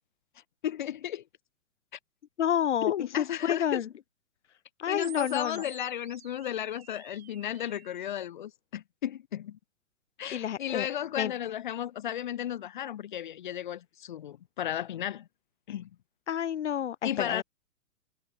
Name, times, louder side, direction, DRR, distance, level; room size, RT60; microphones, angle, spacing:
voice 1, 0.6-1.2 2.8-3.8 4.9-9.6 10.2-15.3 15.7-15.9 17.0-17.4, left 11 dB, 35° left, 0.6 m, -34 dB
voice 2, 2.4-3.9 4.8-5.6 10.3-10.9 11.2-11.3 16.3-17.4, left 9 dB, 55° left, 1.0 m, -29 dB
sound 1, 5.0-8.0, right 11 dB, 45° right, 2.2 m, -50 dB
figure-of-eight pair, 120°, 42 cm